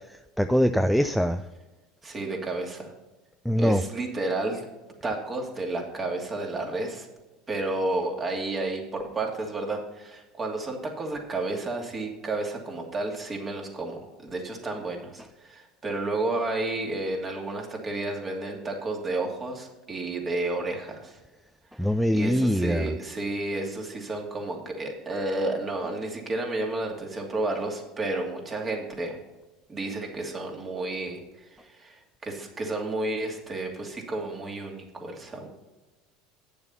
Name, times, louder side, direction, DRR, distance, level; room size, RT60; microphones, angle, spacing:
voice 1, 0.4-1.4 3.5-3.8 21.8-22.9, equal, ahead, 8 dB, 0.4 m, -23 dB
voice 2, 2.0-2.9 3.6-4.6 5.0-7.1 7.5-21.2 21.8-29.2 29.7-35.5, right 2 dB, 30° right, 1 dB, 2.6 m, -31 dB
8.8 x 6.9 x 5.7 m, 1.1 s
hypercardioid pair, 85°, 0 cm